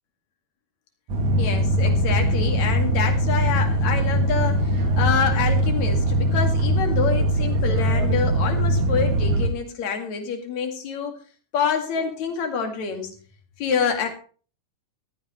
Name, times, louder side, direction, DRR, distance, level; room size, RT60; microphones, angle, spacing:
sound 1, 1.1-9.5, equal, 60° right, 3.1 m, -21 dB
voice 1, 1.4-11.2 11.5-13.1 13.6-14.1, left 6 dB, 55° left, 4 dB, 3.2 m, -27 dB
15.5 x 12.5 x 3.2 m, 0.39 s
omnidirectional pair, 4.0 m